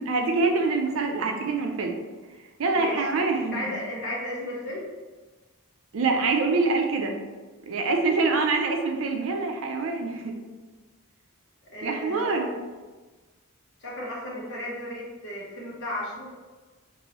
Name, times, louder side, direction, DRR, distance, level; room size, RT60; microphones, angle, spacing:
voice 1, 0.0-2.0 2.6-3.6 5.9-7.2 7.7-10.3 11.8-12.5, right 3 dB, 65° right, 3 dB, 0.5 m, -25 dB
voice 2, 2.7-4.9 11.7-12.5 13.8-16.3, left 1 dB, 50° left, -5 dB, 1.0 m, -35 dB
3.0 x 2.6 x 3.0 m, 1.3 s
head